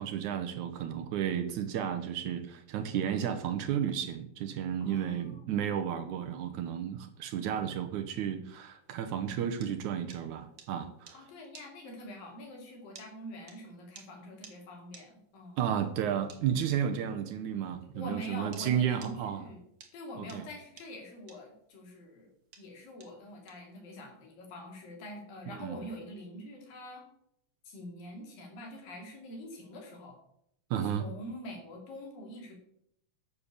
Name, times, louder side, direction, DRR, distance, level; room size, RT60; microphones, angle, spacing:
voice 1, 0.0-11.2 15.6-19.4 20.2-20.5 25.6-25.8 30.7-31.1, right 9 dB, 70° right, 7 dB, 2.1 m, -32 dB
voice 2, 4.8-5.6 11.1-15.6 17.9-19.6 19.9-22.3 22.6-27.0 27.7-30.2 31.0-32.6, equal, 85° left, 0 dB, 4.5 m, -45 dB
sound 1, 9.0-18.7 19.0-24.2, right 6 dB, 50° right, 1.7 m, -55 dB
9.7 x 6.9 x 6.8 m, 0.73 s
omnidirectional pair, 3.9 m